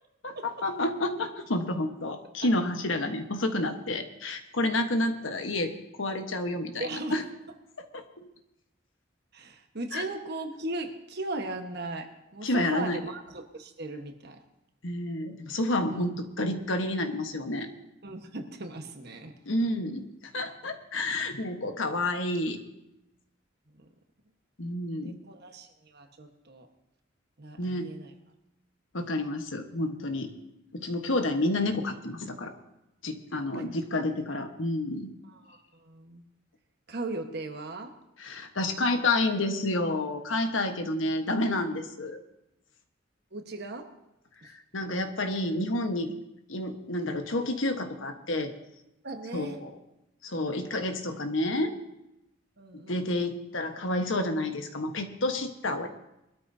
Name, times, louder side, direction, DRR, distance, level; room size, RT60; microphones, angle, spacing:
voice 1, 0.2-5.7 6.0-7.2 7.9-8.3 9.9-10.0 12.4-13.0 14.8-17.7 19.5-22.6 24.6-25.2 27.6-27.9 28.9-30.3 30.7-32.5 33.0-35.1 38.2-42.2 44.5-46.1 46.5-48.5 49.3-49.7 50.2-51.7 52.9-55.9, left 1 dB, 75° left, 6 dB, 1.3 m, -29 dB
voice 2, 6.8-7.1 9.3-14.4 15.9-16.1 18.0-19.3 23.8-23.9 25.0-26.7 27.4-28.1 33.5-33.7 34.3-34.4 35.3-36.2 36.9-37.9 43.3-43.9 44.4-44.5 49.0-49.6 52.6-53.1, right 2 dB, 55° right, 4 dB, 1.4 m, -38 dB
21.5 x 13.0 x 2.8 m, 0.90 s
head